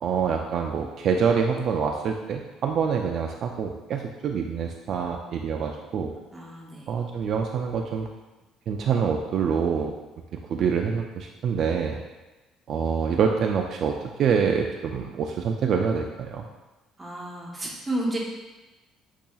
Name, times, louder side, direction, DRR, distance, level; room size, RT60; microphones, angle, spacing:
voice 1, 0.0-6.1 6.9-8.1 8.7-9.9 10.5-12.0 12.7-16.4, right 6 dB, 50° right, 2 dB, 0.3 m, -26 dB
voice 2, 6.3-6.9 17.0-18.2, right 1 dB, 15° right, -3 dB, 1.0 m, -31 dB
8.3 x 2.8 x 2.3 m, 1.1 s
cardioid pair, 130°, 0 cm